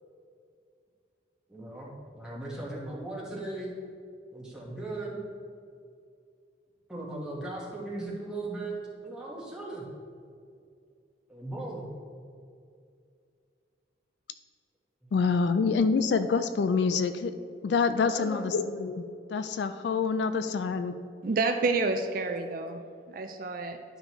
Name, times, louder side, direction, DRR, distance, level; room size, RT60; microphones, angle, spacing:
voice 1, 1.5-3.8 4.3-5.2 6.9-9.9 11.3-11.9 15.0-15.1 18.0-18.5 20.9-21.0, right 2 dB, 5° right, -6 dB, 1.3 m, -38 dB
voice 2, 15.1-17.3 17.6-19.0 19.3-20.9, left 5 dB, 65° left, 10 dB, 0.3 m, -26 dB
voice 3, 21.2-22.8 23.1-23.8, right 3 dB, 45° right, 6 dB, 0.4 m, -29 dB
11.0 x 5.1 x 3.0 m, 2.4 s
head